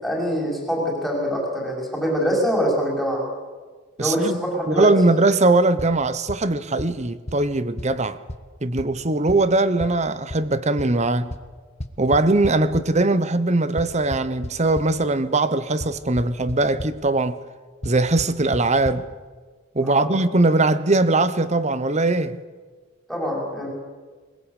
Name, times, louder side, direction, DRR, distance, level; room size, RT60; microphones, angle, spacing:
voice 1, 0.0-3.2 4.0-4.9 19.8-20.2 23.1-23.7, equal, ahead, 5.6 m, -24 dB
voice 2, 4.0-4.4 4.7-8.2 8.6-11.3 12.0-17.4 17.8-19.0 19.7-22.4, right 2 dB, 35° right, 1.0 m, -20 dB
sound 1, 5.8-5.9 6.3-6.4 6.8-6.9 7.3-7.4 7.8-7.9 8.3-8.4 8.8-8.9 9.3-9.4 9.8-9.9 10.3-10.4 10.8-10.9 11.3-11.4 11.8-12.8 13.8-14.9 15.8-15.9 16.2-16.5 16.8-16.9 17.8-17.9 18.2-18.3 18.5-18.6 18.8-19.0, left 1 dB, 30° left, 1.4 m, -30 dB
22.0 x 21.0 x 8.3 m
head